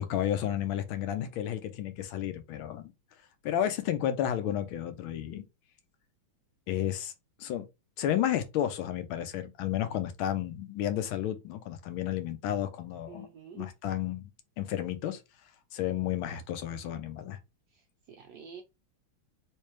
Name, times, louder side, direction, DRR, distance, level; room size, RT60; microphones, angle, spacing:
voice 1, 0.0-2.9 3.4-5.4 6.7-7.1 7.4-7.7 8.0-13.3 13.6-14.3 14.6-15.2 15.7-17.4, left 11 dB, 80° left, 1.4 m, -32 dB
voice 2, 13.1-13.7 17.7-18.6, right 6 dB, 85° right, 0.9 m, -48 dB
3.3 x 3.2 x 3.0 m
omnidirectional pair, 2.3 m